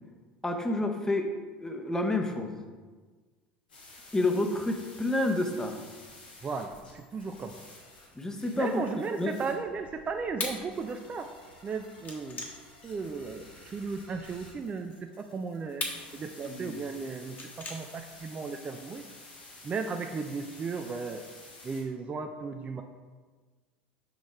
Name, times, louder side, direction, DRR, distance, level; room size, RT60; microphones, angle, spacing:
voice 1, 0.4-1.3 1.6-2.6 4.1-5.8 8.1-8.8 9.2-9.3 16.5-16.8, left 2 dB, 10° left, 4 dB, 0.9 m, -29 dB
sound 1, 3.7-21.8, left 2 dB, 80° left, 1.9 m, -52 dB
voice 2, 6.4-7.6 8.6-11.3 11.6-12.5 12.8-15.8 16.1-19.0 19.6-21.2 21.6-22.8, right 4 dB, 25° right, 5 dB, 0.5 m, -35 dB
sound 2, 8.8-14.3 14.8-18.3, left 3 dB, 35° left, 1.5 m, -41 dB
6.5 x 6.2 x 3.5 m, 1.4 s
hypercardioid pair, 75°, 5 cm